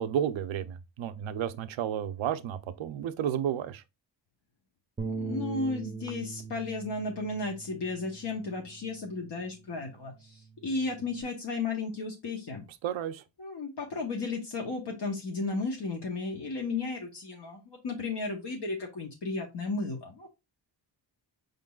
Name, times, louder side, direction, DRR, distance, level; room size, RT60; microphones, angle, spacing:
voice 1, 0.0-3.8 12.8-13.2, right 9 dB, 85° right, 0.6 m, -32 dB
Bass guitar, 5.0-9.4 9.8-11.2, right 4 dB, 15° right, 0.5 m, -41 dB
voice 2, 5.2-12.6 13.4-20.3, left 3 dB, 60° left, 1.0 m, -34 dB
5.1 x 3.8 x 2.3 m
wide cardioid pair, 105°, 46 cm